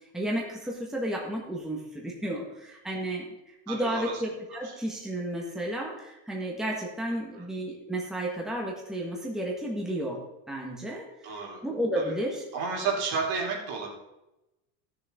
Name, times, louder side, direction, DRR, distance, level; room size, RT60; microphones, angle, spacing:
voice 1, 0.1-10.2 10.5-11.3 11.6-12.4, right 1 dB, ahead, -2 dB, 1.6 m, -32 dB
voice 2, 3.7-4.2 4.6-4.7 7.3-7.5 11.2-11.6 11.9-12.1 12.5-13.9, right 5 dB, 65° right, -1 dB, 3.3 m, -31 dB
16.5 x 6.8 x 3.8 m, 0.95 s
cardioid pair, 150°, 41 cm